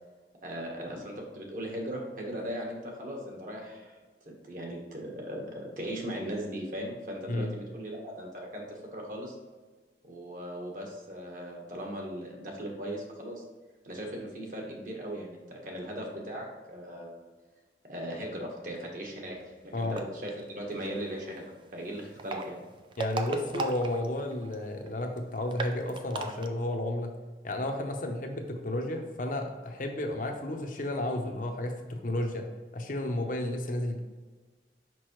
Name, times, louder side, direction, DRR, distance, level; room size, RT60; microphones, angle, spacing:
voice 1, 0.4-3.9 4.2-9.3 10.0-13.4 13.8-17.3 17.8-19.4 19.6-22.6, equal, 50° right, 0 dB, 1.3 m, -38 dB
sound 1, 19.8-20.3 22.0-24.6 24.9-25.0 25.2-25.3 25.5-26.5, right 3 dB, 30° right, 0.4 m, -35 dB
voice 2, 23.0-27.1 27.4-32.5 32.7-34.0, left 1 dB, 50° left, 4 dB, 0.8 m, -32 dB
6.1 x 5.4 x 3.1 m, 1.3 s
head